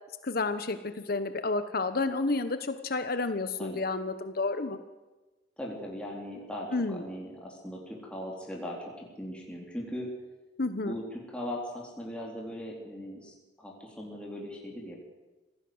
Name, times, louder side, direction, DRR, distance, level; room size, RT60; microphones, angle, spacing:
voice 1, 0.2-4.8 6.7-7.0 10.6-10.9, left 3 dB, 55° left, 10 dB, 1.1 m, -30 dB
voice 2, 5.6-10.1 10.8-15.0, equal, 5° left, -2 dB, 3.9 m, -39 dB
26.5 x 16.5 x 8.0 m, 1.2 s
head